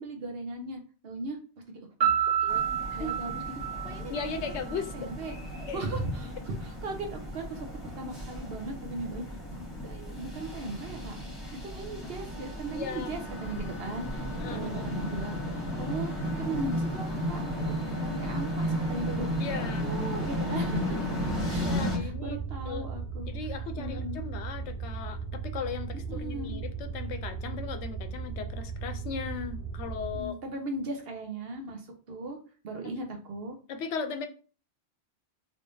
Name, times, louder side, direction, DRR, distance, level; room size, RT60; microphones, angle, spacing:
voice 1, 0.0-1.4 2.0-2.1 2.4-2.6 2.9-3.4 3.8-4.1 4.5-4.6 4.9-5.3 5.7-7.7 8.0-9.2 9.5-11.2 11.6-14.2 14.5-15.4 15.8-16.1 16.4-17.4 17.7-19.3 19.6-21.0 21.5-23.3 23.8-24.2 26.1-26.6 30.1-31.8 32.1-32.4 32.6-33.6, right 2 dB, 65° right, 4 dB, 1.0 m, -37 dB
Piano, 2.0-4.8, right 9 dB, 90° right, 1.5 m, -29 dB
sound 1, 2.5-22.0, equal, ahead, 1.3 m, -34 dB
voice 2, 4.1-5.1 5.7-5.8 11.4-11.6 12.7-13.1 14.4-14.9 19.4-19.9 21.6-22.9 23.3-30.4 33.7-34.3, left 5 dB, 85° left, 8 dB, 0.9 m, -37 dB
sound 2, 21.2-30.2, right 5 dB, 25° right, 0.7 m, -37 dB
3.4 x 3.3 x 2.6 m, 0.38 s
omnidirectional pair, 1.1 m